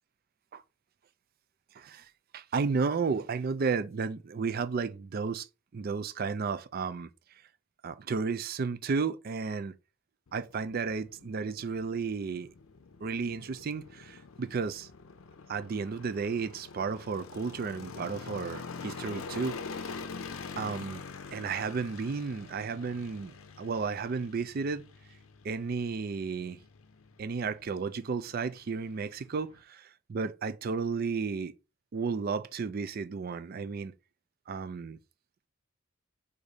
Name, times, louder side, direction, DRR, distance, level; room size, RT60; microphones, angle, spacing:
voice 1, 1.7-2.1 2.3-5.5 5.7-7.1 7.8-9.8 10.3-12.5 13.0-14.9 15.5-19.9 20.6-21.0 21.3-24.9 25.4-26.6 27.2-31.5 31.9-33.9 34.5-35.0, right 5 dB, 45° right, 0.4 m, -33 dB
sound 1, 10.3-29.6, left 5 dB, 75° left, 0.6 m, -46 dB
4.9 x 2.7 x 3.9 m
head